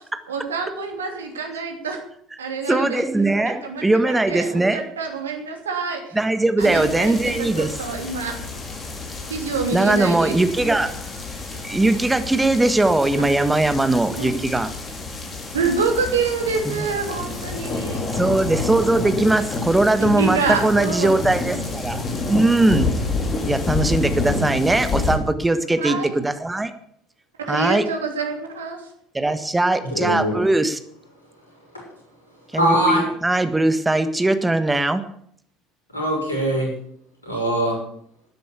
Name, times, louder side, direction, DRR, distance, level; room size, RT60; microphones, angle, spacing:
voice 1, 0.3-2.0 2.4-3.0 3.4-6.2 6.6-8.3 9.3-10.3 14.2-14.3 15.5-18.0 20.0-21.2 25.8-26.2 27.5-28.8, right 5 dB, 80° right, 4 dB, 2.9 m, -26 dB
voice 2, 2.7-4.8 6.1-7.7 9.7-10.9 11.6-14.7 16.6-16.9 18.1-22.9 23.4-26.7 27.5-27.8 29.1-30.8 32.5-35.0, right 2 dB, 10° right, 10 dB, 1.6 m, -20 dB
sound 1, 6.6-25.2, left 3 dB, 30° left, 4.7 m, -29 dB
voice 3, 29.8-30.4 31.7-31.8 32.5-33.0 35.9-36.7 37.2-37.8, right 1 dB, 85° left, -2 dB, 6.4 m, -22 dB
13.0 x 10.0 x 8.3 m, 0.66 s
figure-of-eight pair, 65°, 0 cm